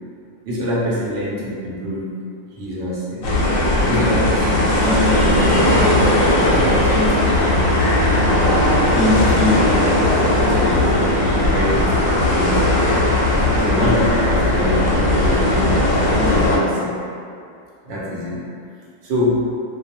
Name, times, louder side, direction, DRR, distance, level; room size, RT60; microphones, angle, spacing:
voice 1, 0.5-2.1 2.6-3.3 3.8-5.7 6.4-7.6 8.7-9.7 10.1-12.6 13.5-15.8 16.1-17.0 17.8-18.4 19.0-19.5, left 1 dB, 60° right, -6 dB, 0.8 m, -24 dB
sound 1, 3.2-16.6, left 1 dB, 90° left, 1.0 m, -17 dB
2.3 x 2.1 x 2.8 m, 2.3 s
omnidirectional pair, 1.4 m